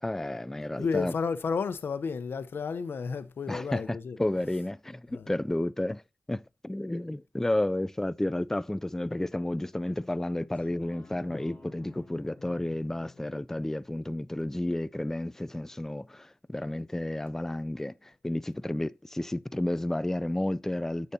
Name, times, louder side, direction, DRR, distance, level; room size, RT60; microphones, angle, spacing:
voice 1, 0.0-1.1 3.5-6.0 6.3-21.1, left 1 dB, 10° left, 0.4 m, -31 dB
voice 2, 0.8-4.2 5.1-5.3, left 5 dB, 90° left, 0.8 m, -32 dB
sound 1, 10.5-15.6 16.0-16.1, left 3 dB, 40° left, 5.6 m, -55 dB
10.5 x 7.0 x 2.8 m
wide cardioid pair, 70°, 4 cm